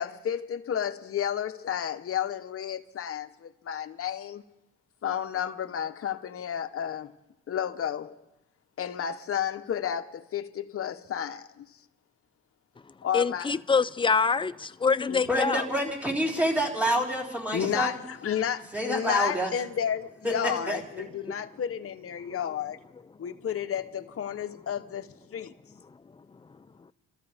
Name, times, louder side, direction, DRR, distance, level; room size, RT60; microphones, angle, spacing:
voice 1, 0.0-4.4 5.0-7.1 7.5-8.2 8.8-11.7 13.0-13.5 15.1-15.2 17.5-22.8 23.2-25.5, left 9 dB, 50° left, 1.1 m, -32 dB
voice 2, 13.1-15.7 22.3-22.4, left 5 dB, 15° left, 0.5 m, -25 dB
voice 3, 15.3-18.0 18.7-19.5 20.2-20.8, equal, 5° right, 4.3 m, -27 dB
30.0 x 13.5 x 3.5 m
cardioid pair, 90°, 30 cm